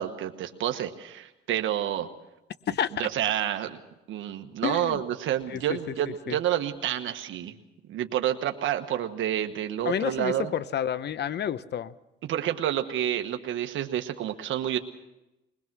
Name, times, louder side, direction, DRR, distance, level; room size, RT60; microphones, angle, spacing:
voice 1, 0.0-2.1 3.0-3.8 4.1-7.5 7.9-10.5 12.3-14.8, right 11 dB, 80° right, 6 dB, 1.3 m, -29 dB
voice 2, 4.6-5.0 5.5-5.8 6.3-6.4 9.8-11.9, left 9 dB, 60° left, 15 dB, 0.9 m, -29 dB
22.0 x 20.5 x 6.1 m, 0.93 s
cardioid pair, 90°, 20 cm